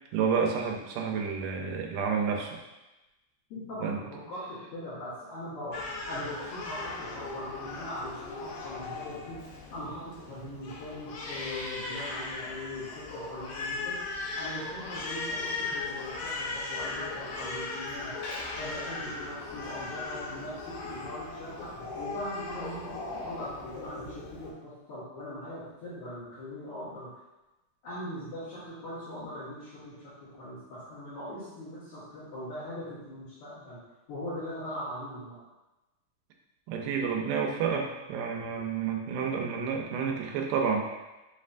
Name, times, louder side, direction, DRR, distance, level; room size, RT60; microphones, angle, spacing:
voice 1, 0.1-2.6 3.8-4.0 36.7-40.9, right 6 dB, 90° right, 1 dB, 2.2 m, -30 dB
voice 2, 3.5-9.4 9.7-14.0 14.4-18.2 18.6-27.1 27.8-33.8 34.1-35.4, left 1 dB, 55° left, -14 dB, 2.1 m, -40 dB
Crying sobbing, 5.7-24.5, left 3 dB, 85° left, 2.3 m, -38 dB
5.4 x 3.2 x 2.5 m, 1.1 s
omnidirectional pair, 3.6 m